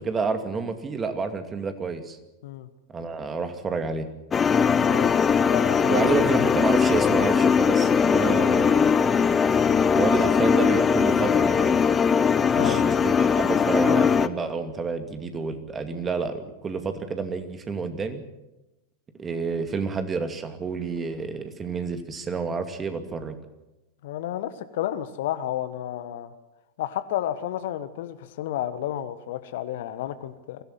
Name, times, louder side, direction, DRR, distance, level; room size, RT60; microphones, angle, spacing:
voice 1, 0.0-2.2 2.9-4.1 5.9-9.3 9.9-11.8 12.5-18.2 19.2-23.4, right 4 dB, 20° right, 8 dB, 2.4 m, -29 dB
sound 1, 4.3-14.3, left 6 dB, 20° left, 0.8 m, -20 dB
voice 2, 5.5-6.0 12.6-12.8 24.0-26.3 26.8-30.6, left 12 dB, 55° left, 12 dB, 1.2 m, -31 dB
23.5 x 16.5 x 7.6 m, 1.0 s
figure-of-eight pair, 90°, 0 cm